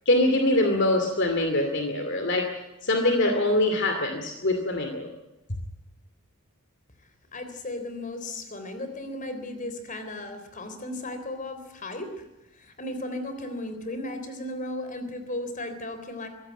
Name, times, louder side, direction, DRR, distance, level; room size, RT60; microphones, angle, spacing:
voice 1, 0.1-2.5 2.8-5.1, left 1 dB, 55° left, 5 dB, 2.5 m, -23 dB
voice 2, 7.3-16.3, left 1 dB, 35° left, 8 dB, 3.6 m, -35 dB
23.0 x 16.0 x 9.1 m, 0.99 s
head